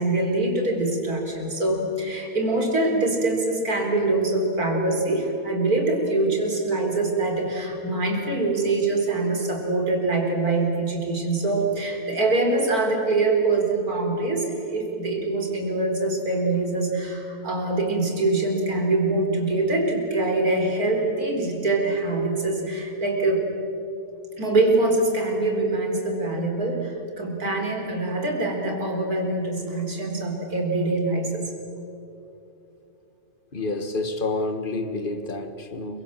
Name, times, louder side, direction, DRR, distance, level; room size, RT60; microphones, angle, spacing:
voice 1, 0.0-23.4 24.4-31.4, right 2 dB, 85° right, 4.7 m, -24 dB
voice 2, 33.5-36.0, left 2 dB, 35° left, 1.8 m, -29 dB
28.5 x 24.5 x 7.5 m
omnidirectional pair, 1.5 m